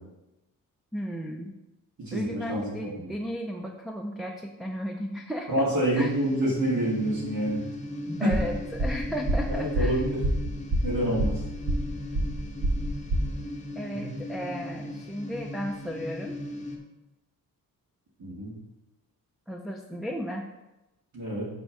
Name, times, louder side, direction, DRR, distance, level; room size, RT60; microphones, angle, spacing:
voice 1, 0.9-1.5 2.1-5.6 6.0-6.1 8.2-10.0 13.8-16.4 19.5-20.5, equal, ahead, 2 dB, 0.3 m, -34 dB
voice 2, 2.0-3.1 5.5-7.6 8.2-8.3 9.5-10.3 10.8-11.4 13.9-14.2 18.2-18.5 21.1-21.5, right 1 dB, 55° right, -6 dB, 2.1 m, -27 dB
sound 1, 5.8-16.8, left 1 dB, 20° left, 0.9 m, -38 dB
sound 2, 8.3-13.3, right 1 dB, 85° right, 1.2 m, -28 dB
6.6 x 3.5 x 5.8 m, 0.98 s
wide cardioid pair, 160°, 35 cm